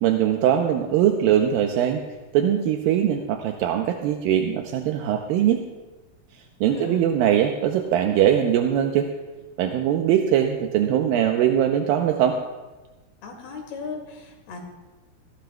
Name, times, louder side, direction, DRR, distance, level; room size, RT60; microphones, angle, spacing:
voice 1, 0.0-2.0 2.3-5.6 6.6-9.1 9.6-12.4, right 10 dB, 80° right, 3 dB, 2.3 m, -21 dB
voice 2, 6.7-7.0 13.2-14.6, left 4 dB, 85° left, 0 dB, 4.0 m, -36 dB
19.5 x 15.0 x 2.3 m, 1.2 s
omnidirectional pair, 4.4 m